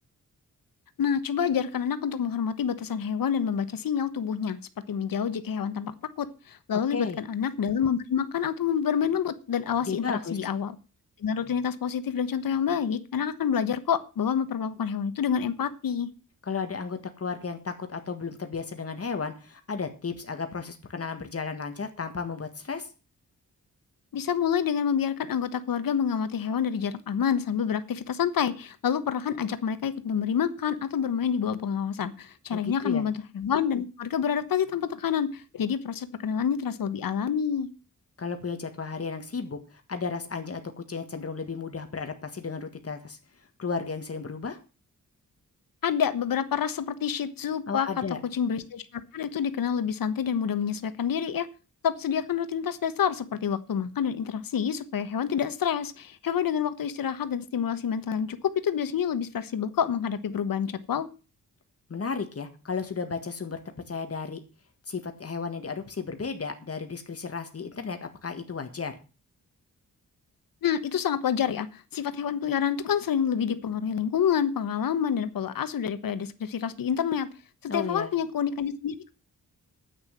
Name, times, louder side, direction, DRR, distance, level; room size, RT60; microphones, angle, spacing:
voice 1, 1.0-4.6 4.9-10.0 10.3-10.8 11.2-16.1 24.1-37.7 45.8-47.9 48.3-51.5 51.8-61.1 70.6-77.3 77.6-79.1, left 8 dB, 85° left, 12 dB, 1.2 m, -28 dB
voice 2, 9.9-10.4 16.5-22.9 32.5-33.0 38.2-43.2 43.6-44.6 47.7-48.2 61.9-63.6 63.9-64.4 64.9-69.0 77.7-78.1, left 5 dB, 45° left, 7 dB, 1.7 m, -34 dB
9.8 x 8.8 x 7.4 m, 0.34 s
wide cardioid pair, 95°, 33 cm